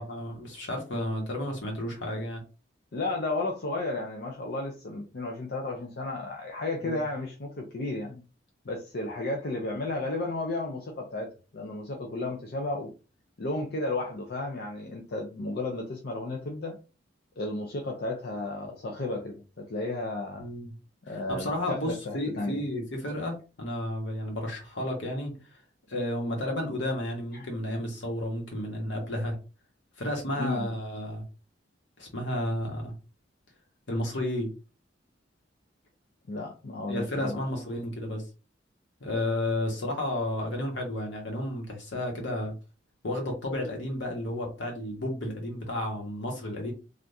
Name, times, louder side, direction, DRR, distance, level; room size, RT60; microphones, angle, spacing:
voice 1, 0.0-2.4 6.8-7.0 20.3-20.7 21.1-25.3 25.9-29.4 30.0-31.2 32.0-32.9 33.9-34.5 36.9-38.2 39.0-42.5 43.0-46.7, left 1 dB, 80° left, 1.2 m, -32 dB
voice 2, 2.9-8.2 8.6-12.9 13.4-16.8 17.4-20.5 21.1-22.6 27.3-27.5 30.4-30.7 36.3-37.4, left 2 dB, 55° left, 0.5 m, -33 dB
3.4 x 2.5 x 2.6 m
head